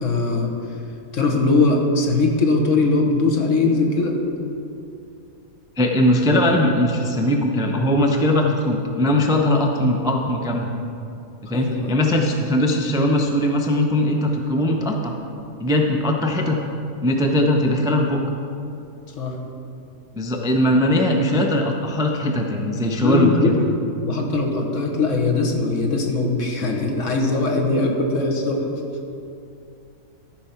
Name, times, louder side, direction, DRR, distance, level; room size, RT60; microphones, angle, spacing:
voice 1, 0.0-0.5 1.1-4.2 11.5-11.9 19.2-19.4 23.0-23.6 24.0-28.6, left 3 dB, 60° left, 1 dB, 1.4 m, -20 dB
voice 2, 5.8-10.7 11.5-15.1 15.6-16.6 17.0-18.2 20.1-23.5, left 1 dB, 5° right, 1 dB, 0.3 m, -20 dB
13.0 x 4.6 x 5.7 m, 2.6 s
omnidirectional pair, 1.5 m